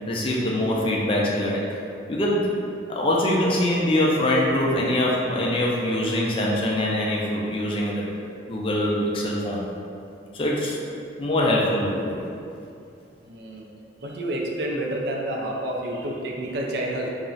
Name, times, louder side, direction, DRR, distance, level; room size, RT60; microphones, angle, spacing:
voice 1, 0.1-1.6 2.1-2.5 2.9-8.0 8.5-9.6 10.3-10.8 11.2-12.3, left 1 dB, 30° left, -3 dB, 0.3 m, -23 dB
voice 2, 13.2-13.7 14.0-17.1, right 1 dB, 60° right, -1 dB, 0.4 m, -29 dB
2.4 x 2.1 x 3.7 m, 2.5 s
head